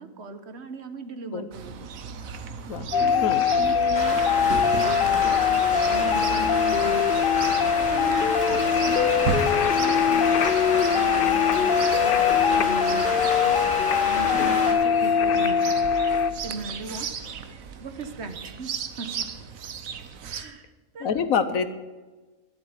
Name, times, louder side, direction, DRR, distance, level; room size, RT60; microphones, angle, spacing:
voice 1, 0.0-1.9 3.0-7.1 7.9-10.5 10.9-11.3 11.5-13.7 14.0-15.7 16.4-17.1 17.8-19.1 20.3-21.2, right 3 dB, 55° right, 9 dB, 1.2 m, -38 dB
Chirp tweet, 1.5-20.4, right 6 dB, 80° right, 1.3 m, -36 dB
sound 1, 2.9-16.3, left 7 dB, 55° left, 0.7 m, -22 dB
Rain, 3.9-14.7, equal, 5° left, 4.1 m, -31 dB
voice 2, 21.0-21.7, left 6 dB, 80° left, 11 dB, 1.4 m, -27 dB
12.0 x 7.6 x 9.6 m, 1.2 s
omnidirectional pair, 1.4 m